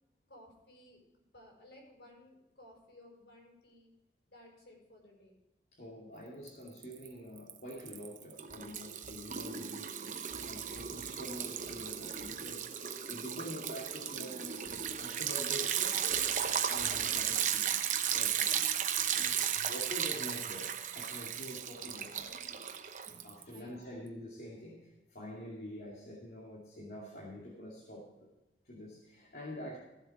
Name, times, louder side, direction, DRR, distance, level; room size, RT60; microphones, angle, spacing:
voice 1, 0.3-1.0 1.3-3.9 4.3-5.4 23.5-24.0, left 1 dB, 80° left, -1 dB, 5.4 m, -57 dB
voice 2, 5.7-14.6 15.0-16.1 16.7-17.7 18.1-18.7 19.0-22.4 23.2-28.3 28.6-29.8, equal, 60° left, -5 dB, 2.5 m, -46 dB
Liquid, 6.5-7.1 7.4-23.6, right 8 dB, 45° right, 0.8 m, -35 dB
15.5 x 7.8 x 4.8 m, 0.99 s
head